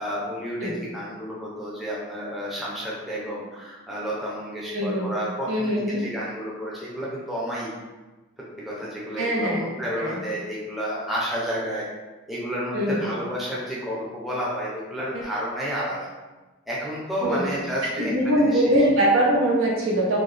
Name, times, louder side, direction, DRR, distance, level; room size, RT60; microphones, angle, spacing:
voice 1, 0.0-7.7 8.6-11.8 12.3-16.1 16.7-18.8, equal, ahead, -6 dB, 0.6 m, -31 dB
voice 2, 4.7-5.1 5.5-6.0 9.2-9.6 10.0-10.2 12.7-13.0 15.1-15.2 17.2-17.5 18.0-20.2, right 1 dB, 75° right, -3 dB, 0.9 m, -22 dB
3.9 x 2.2 x 3.3 m, 1.2 s
head